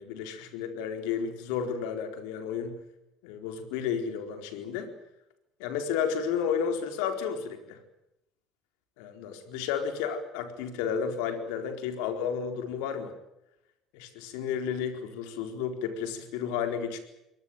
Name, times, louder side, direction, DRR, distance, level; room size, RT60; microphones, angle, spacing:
voice 1, 0.0-2.8 3.2-4.9 5.6-7.8 9.0-13.1 13.9-17.0, left 7 dB, 80° left, 7 dB, 4.3 m, -32 dB
23.0 x 19.0 x 9.3 m, 0.87 s
supercardioid pair, 80°, 0 cm